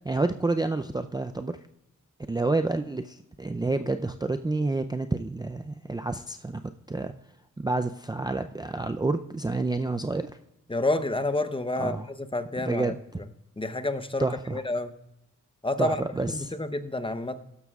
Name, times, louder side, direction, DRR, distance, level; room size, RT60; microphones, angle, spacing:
voice 1, 0.0-1.6 2.3-6.6 6.9-7.1 7.6-10.3 11.8-12.1 12.6-13.2 14.2-14.6 15.8-16.5, right 3 dB, 15° right, 7 dB, 0.5 m, -29 dB
voice 2, 10.7-12.9 13.6-14.9 15.6-16.0 16.3-17.4, left 2 dB, 15° left, 10 dB, 0.8 m, -29 dB
16.0 x 12.5 x 2.4 m, 0.87 s
cardioid pair, 85°, 31 cm